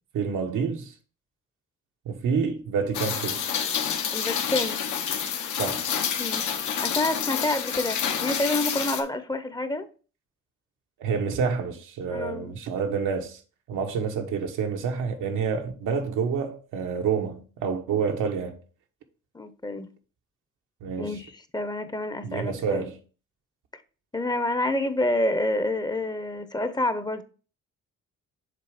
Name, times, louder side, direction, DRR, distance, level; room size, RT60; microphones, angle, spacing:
voice 1, 0.1-0.9 2.0-3.4 5.6-5.8 11.0-13.4 13.7-18.6 20.8-21.2 22.2-23.0, right 6 dB, 85° right, 1.2 m, -28 dB
Rain, 2.9-9.0, left 7 dB, 75° left, 1.2 m, -28 dB
voice 2, 4.1-4.8 6.2-6.5 6.8-9.9 12.1-12.6 19.3-19.9 21.0-22.9 24.1-27.2, left 1 dB, 15° left, 0.7 m, -28 dB
6.8 x 3.8 x 4.9 m
cardioid pair, 90°, 30 cm